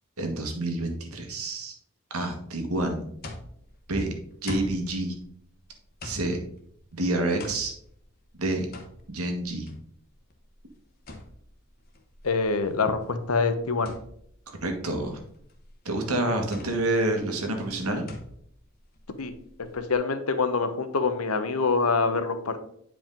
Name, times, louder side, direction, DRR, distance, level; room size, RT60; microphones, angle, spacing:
voice 1, 0.2-1.7 2.1-3.0 3.9-4.1 4.4-5.1 6.0-6.4 6.9-7.7 8.4-8.7 9.1-9.7 14.5-15.2 15.8-18.0, right 2 dB, 90° right, 4 dB, 1.6 m, -28 dB
sound 1, 2.7-20.0, left 2 dB, 45° left, 1.0 m, -45 dB
voice 2, 12.2-13.9 19.2-19.3 19.7-22.6, left 4 dB, 85° left, 9 dB, 0.9 m, -25 dB
9.0 x 4.9 x 3.8 m, 0.68 s
head